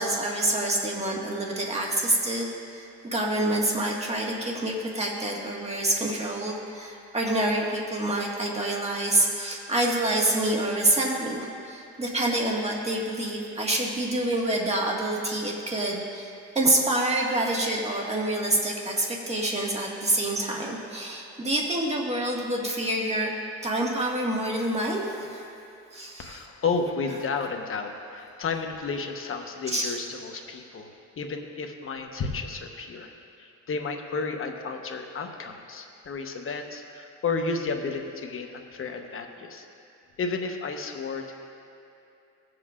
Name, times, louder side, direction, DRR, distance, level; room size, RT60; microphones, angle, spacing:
voice 1, 0.0-2.5 2.7-16.3 16.6-23.3 23.6-25.5 25.9-26.4 29.7-30.0, right 1 dB, 20° right, -2 dB, 1.8 m, -27 dB
voice 2, 26.2-33.1 33.4-39.7 40.2-41.3, left 4 dB, 45° left, 4 dB, 1.1 m, -32 dB
17.0 x 7.7 x 2.5 m, 2.6 s
cardioid pair, 90°, 30 cm